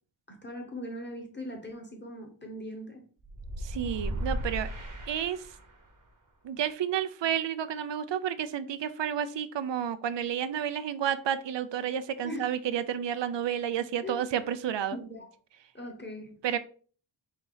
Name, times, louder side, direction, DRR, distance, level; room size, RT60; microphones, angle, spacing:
voice 1, 0.3-3.0 12.2-12.5 14.0-14.2 14.9-15.3 15.7-16.3, left 1 dB, 20° left, 1.2 m, -40 dB
sound 1, 3.2-5.9, right 1 dB, 40° right, 1.0 m, -36 dB
voice 2, 3.6-4.7 5.1-5.4 6.4-15.0 16.4-16.6, right 9 dB, 65° right, 0.5 m, -31 dB
4.2 x 2.8 x 3.9 m
wide cardioid pair, 70°, 48 cm